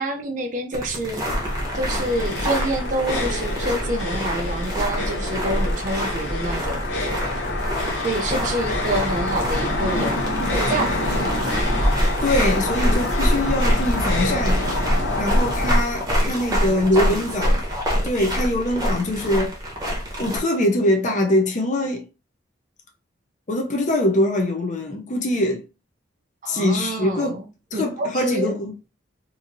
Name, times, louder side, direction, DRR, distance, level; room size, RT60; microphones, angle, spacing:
voice 1, 0.0-1.5 1.7-7.1 8.0-10.2 10.5-11.6 16.6-17.6 26.4-27.5 27.7-28.5, right 1 dB, 40° right, 0.4 m, -28 dB
sound 1, 0.7-20.4, equal, 20° right, 0.8 m, -26 dB
sound 2, 1.3-15.8, left 1 dB, 65° left, 0.9 m, -25 dB
voice 2, 12.2-14.6 15.2-17.6 18.0-19.6 20.2-22.1 23.5-25.6 26.5-27.4 27.7-28.9, left 1 dB, 35° left, 0.5 m, -23 dB
2.8 x 2.6 x 2.6 m
head